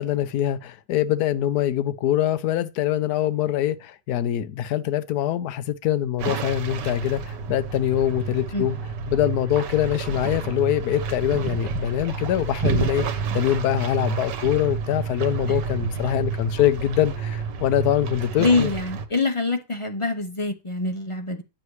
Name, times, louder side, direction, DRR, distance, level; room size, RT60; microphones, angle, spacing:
voice 1, 0.0-8.8 9.1-13.1 13.3-18.7, left 11 dB, 70° left, 1.2 m, -24 dB
sound 1, 6.2-19.1, right 6 dB, 80° right, 1.5 m, -29 dB
voice 2, 18.4-21.4, left 3 dB, 30° left, 0.5 m, -24 dB
9.4 x 7.6 x 3.2 m
omnidirectional pair, 1.9 m